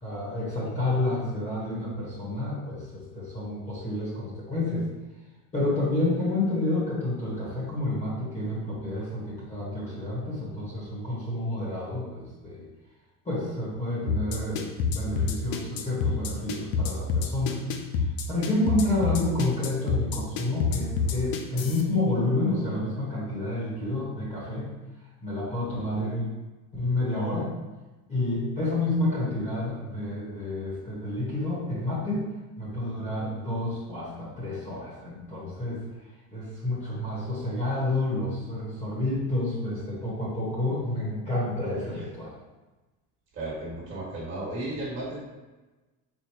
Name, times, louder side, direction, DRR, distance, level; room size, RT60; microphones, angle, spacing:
voice 1, 0.0-4.9 5.5-12.7 13.2-17.6 18.0-24.7 25.2-26.3 26.7-27.5 28.1-32.3 32.6-35.8 36.3-42.3, left 2 dB, 20° left, -8 dB, 1.1 m, -29 dB
sound 1, 14.1-21.8, left 5 dB, 65° left, 0.6 m, -27 dB
voice 2, 43.3-45.2, right 2 dB, 35° right, -6 dB, 1.4 m, -34 dB
4.5 x 2.2 x 4.7 m, 1.1 s
cardioid pair, 175°, 37 cm